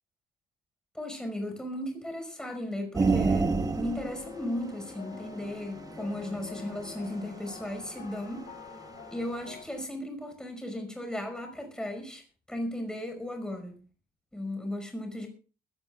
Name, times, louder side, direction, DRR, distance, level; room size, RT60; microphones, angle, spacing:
voice 1, 0.9-3.5 3.8-8.5 9.1-12.2 12.5-13.8 14.3-15.3, left 1 dB, 5° left, 4 dB, 5.5 m, -36 dB
sound 1, 3.0-9.7, left 8 dB, 50° left, 1.3 m, -47 dB
sound 2, 3.0-8.8 9.1-9.2, right 4 dB, 20° right, 1.1 m, -30 dB
21.5 x 16.0 x 2.5 m, 0.37 s
cardioid pair, 110°, 17 cm